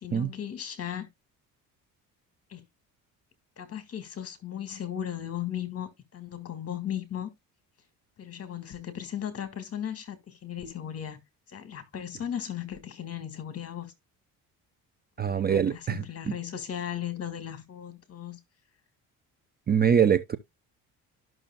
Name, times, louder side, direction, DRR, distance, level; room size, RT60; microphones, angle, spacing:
voice 1, 0.0-1.1 2.5-2.6 3.6-7.3 8.2-11.2 11.5-13.9 15.3-18.4, left 10 dB, 40° left, 1.9 m, -36 dB
voice 2, 15.2-16.0 19.7-20.4, right 8 dB, 25° right, 0.5 m, -23 dB
12.0 x 6.2 x 2.3 m
cardioid pair, 105°, 37 cm